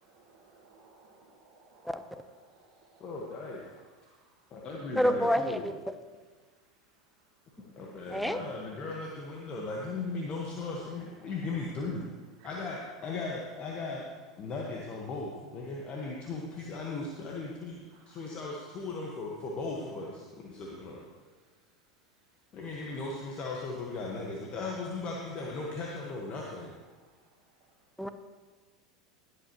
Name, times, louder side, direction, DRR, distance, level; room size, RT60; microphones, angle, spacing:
voice 1, 0.0-3.2 10.5-11.0 11.2-11.6 12.4-12.6 18.1-18.3, right 3 dB, 55° right, -4 dB, 1.8 m, -58 dB
voice 2, 3.0-3.6 4.5-5.6 7.8-12.0 12.4-14.0 14.4-17.8 18.1-21.0 22.5-26.7, left 3 dB, 40° left, -2 dB, 1.6 m, -37 dB
voice 3, 5.0-5.8 8.1-8.4 28.0-28.1, equal, ahead, 10 dB, 0.8 m, -28 dB
19.0 x 8.2 x 3.1 m, 1.4 s
figure-of-eight pair, 85°, 3 cm